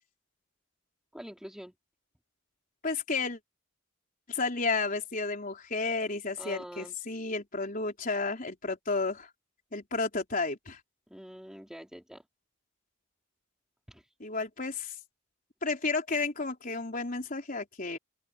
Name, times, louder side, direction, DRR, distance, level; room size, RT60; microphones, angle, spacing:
voice 1, 1.1-1.7 6.4-6.9 11.1-12.2 13.9-14.1, equal, 5° right, 2.9 m, -45 dB
voice 2, 2.8-3.4 4.3-9.3 9.7-10.8 14.2-14.9 15.6-18.0, left 3 dB, 40° left, 4.2 m, -32 dB
open air
head